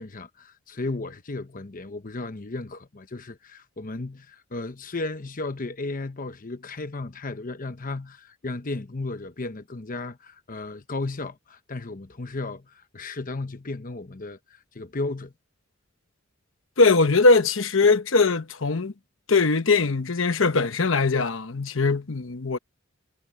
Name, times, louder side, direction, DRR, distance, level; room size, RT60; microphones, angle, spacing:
voice 1, 0.0-15.3, left 2 dB, 45° left, 0.9 m, -34 dB
voice 2, 16.8-18.9 19.3-22.6, left 3 dB, 70° left, 1.1 m, -21 dB
head